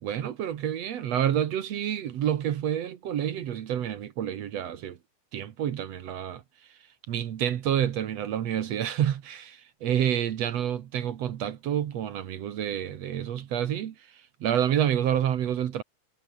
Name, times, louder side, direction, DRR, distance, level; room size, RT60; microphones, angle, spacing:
voice 1, 0.0-5.0 5.3-6.4 7.1-14.0 14.4-15.8, right 10 dB, 60° right, 2.1 m, -28 dB
omnidirectional pair, 4.0 m